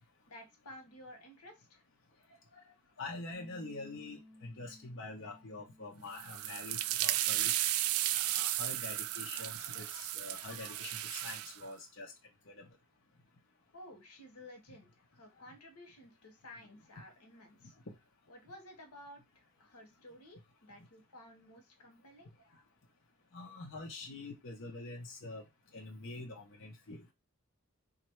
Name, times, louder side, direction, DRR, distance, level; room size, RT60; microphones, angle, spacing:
voice 1, 0.3-1.8 13.7-17.7 18.3-22.3, left 1 dB, 90° left, 4 dB, 1.1 m, -54 dB
voice 2, 3.0-7.5 8.1-12.1 12.5-12.7 23.3-25.4 25.7-27.1, left 2 dB, 55° left, 0 dB, 0.8 m, -45 dB
Bass guitar, 3.3-9.6, left 1 dB, 20° right, 0.8 m, -61 dB
sound 1, 6.1-11.5, right 14 dB, 70° right, 0.3 m, -34 dB
3.1 x 2.5 x 4.4 m, 0.22 s
head